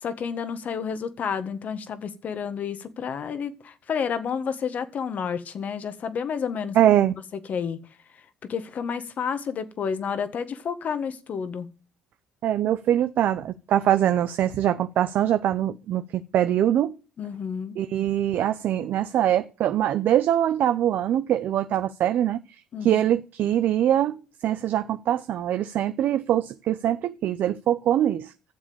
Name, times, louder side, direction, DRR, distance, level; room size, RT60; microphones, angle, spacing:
voice 1, 0.0-6.8 7.5-7.8 8.5-11.7 17.2-17.8 22.7-23.0, left 6 dB, 50° left, 1.5 m, -30 dB
voice 2, 6.7-7.1 12.4-17.0 17.8-22.4 22.8-28.3, right 11 dB, 60° right, 0.6 m, -23 dB
12.0 x 7.3 x 7.0 m
cardioid pair, 95°, 3 cm